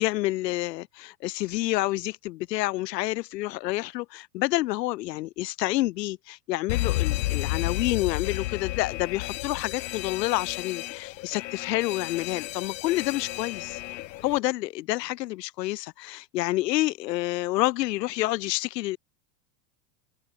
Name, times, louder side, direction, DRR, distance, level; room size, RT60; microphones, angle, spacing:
voice 1, 0.0-13.8 14.2-19.0, left 17 dB, 75° left, 2.6 m, -28 dB
Alarm, 6.7-14.4, left 17 dB, 90° left, 0.9 m, -32 dB
supercardioid pair, 145°, 50 cm